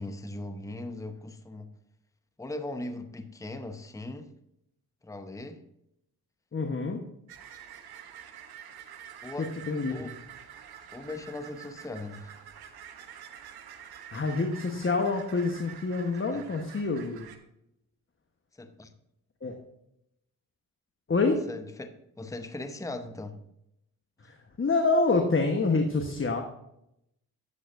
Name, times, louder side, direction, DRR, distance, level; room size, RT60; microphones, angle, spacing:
voice 1, 0.0-1.7 2.4-4.3 5.0-5.6 9.2-9.5 9.9-10.1 10.9-12.3 16.3-16.4 18.6-18.9 21.3-23.4, left 2 dB, 10° left, 8 dB, 0.8 m, -39 dB
voice 2, 6.5-7.1 9.4-10.1 14.1-17.3 19.4-19.6 21.1-21.4 24.2-26.4, left 3 dB, 30° left, 4 dB, 1.1 m, -27 dB
sound 1, 7.3-17.4, right 9 dB, 70° right, 1.0 m, -47 dB
10.5 x 7.9 x 2.6 m, 0.80 s
supercardioid pair, 50°, 39 cm